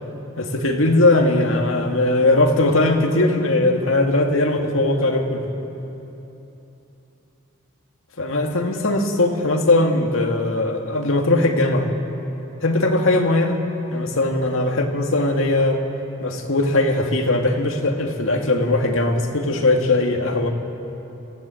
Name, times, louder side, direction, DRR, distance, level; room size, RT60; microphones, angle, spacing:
voice 1, 0.4-5.5 8.2-11.9 12.6-13.6 13.9-15.8 16.2-20.5, left 2 dB, 75° left, 3 dB, 2.0 m, -19 dB
26.0 x 16.0 x 7.7 m, 3.0 s
head